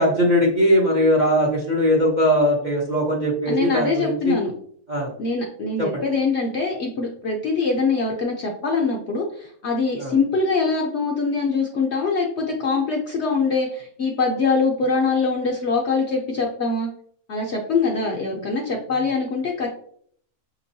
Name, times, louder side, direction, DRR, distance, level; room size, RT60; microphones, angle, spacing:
voice 1, 0.0-4.4 4.9-5.1 5.8-6.0 10.0-10.2, equal, 40° right, -2 dB, 0.7 m, -20 dB
voice 2, 3.5-4.5 5.2-16.9 17.3-19.7, left 4 dB, 60° left, 0 dB, 0.7 m, -23 dB
5.8 x 3.0 x 2.6 m, 0.62 s
omnidirectional pair, 1.7 m